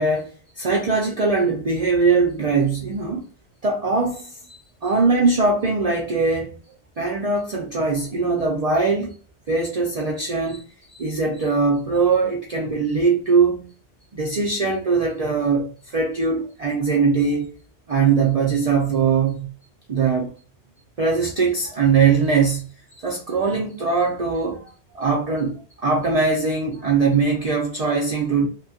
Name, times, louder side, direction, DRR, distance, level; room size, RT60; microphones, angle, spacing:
voice 1, 0.0-3.3 3.6-6.5 7.0-9.1 9.5-10.6 10.9-13.7 14.1-17.5 17.9-19.5 19.9-20.3 21.0-22.7 23.0-28.5, right 4 dB, 50° right, 0.5 m, -21 dB
2.9 x 2.2 x 2.6 m
omnidirectional pair, 1.1 m